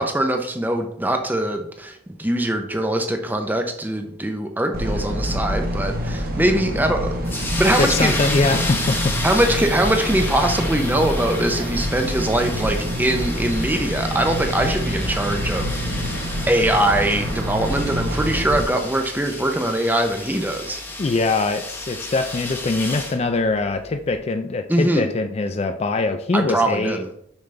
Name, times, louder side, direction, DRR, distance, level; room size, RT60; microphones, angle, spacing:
voice 1, 0.0-8.2 8.5-8.6 9.2-16.1 16.5-20.8 24.7-25.1 26.3-27.1, right 1 dB, 10° right, 5 dB, 0.7 m, -22 dB
sound 1, 4.7-18.6, equal, 50° right, 1.1 m, -26 dB
sound 2, 7.2-23.2, left 2 dB, 10° left, 0.9 m, -32 dB
voice 2, 7.8-9.1 21.0-27.0, left 3 dB, 35° left, 8 dB, 0.4 m, -22 dB
7.0 x 5.5 x 3.3 m, 0.70 s
head